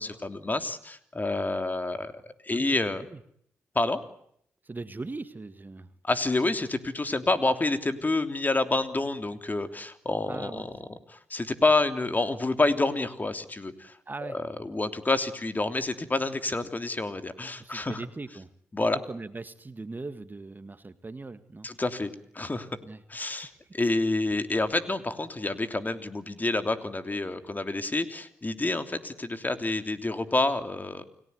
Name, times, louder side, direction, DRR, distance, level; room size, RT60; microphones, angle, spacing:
voice 1, 0.0-3.0 3.7-4.0 6.0-14.0 14.3-18.0 18.7-19.0 21.6-22.7 23.1-31.0, left 2 dB, 30° left, 9 dB, 3.2 m, -28 dB
voice 2, 2.5-3.2 4.6-5.9 10.3-10.7 14.1-14.4 17.6-18.5 19.1-21.7 22.8-23.0 23.6-23.8, right 3 dB, 30° right, 11 dB, 1.8 m, -40 dB
30.0 x 18.5 x 9.6 m, 0.70 s
supercardioid pair, 45°, 6 cm